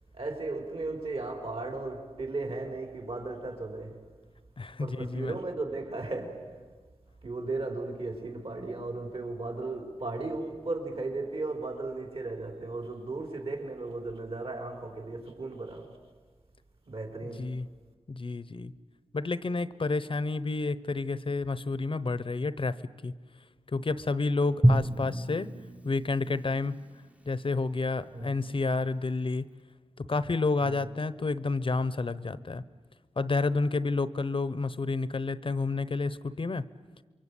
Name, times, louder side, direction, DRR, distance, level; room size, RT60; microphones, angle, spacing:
voice 1, 0.1-4.0 4.8-6.6 7.2-16.0 16.9-17.6 28.1-28.3 30.6-30.8, right 2 dB, 60° right, 4.3 m, -36 dB
voice 2, 4.6-5.4 17.4-17.7 18.1-18.7 19.1-23.1 23.7-25.5 25.8-26.8 27.3-29.5 30.0-32.6 33.2-36.6, left 3 dB, 50° left, 0.9 m, -30 dB
Drum, 24.6-27.6, right 1 dB, 10° right, 0.9 m, -29 dB
28.0 x 23.5 x 8.4 m
cardioid pair, 55°, 11 cm